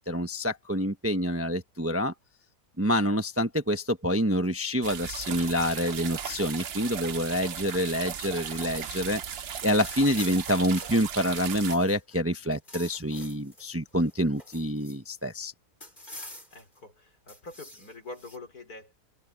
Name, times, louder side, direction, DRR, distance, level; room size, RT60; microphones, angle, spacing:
voice 1, 0.0-2.1 2.8-9.2 9.6-15.5, equal, 10° right, 0.8 m, -27 dB
sound 1, 4.8-11.8, right 8 dB, 50° right, 0.8 m, -37 dB
sound 2, 9.8-12.2 12.4-13.7 14.0-15.2 15.8-16.8 17.3-18.4, left 1 dB, 30° left, 6.5 m, -46 dB
voice 2, 16.5-18.9, left 2 dB, 70° left, 5.5 m, -45 dB
omnidirectional pair, 1.7 m